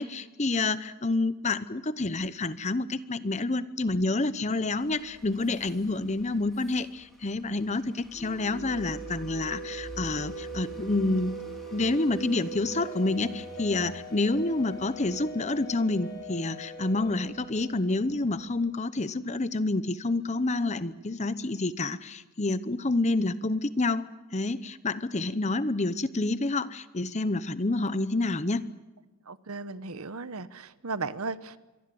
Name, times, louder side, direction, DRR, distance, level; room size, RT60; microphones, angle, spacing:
voice 1, 0.0-11.4 11.7-24.1 24.3-28.7, left 2 dB, 30° left, 14 dB, 0.9 m, -28 dB
sound 1, 4.8-18.5, equal, ahead, 4.2 m, -50 dB
sound 2, 8.1-18.5, right 2 dB, 50° left, 6.0 m, -41 dB
voice 2, 29.3-31.6, right 4 dB, 80° right, 14 dB, 1.1 m, -36 dB
25.5 x 23.0 x 7.8 m, 1.1 s
head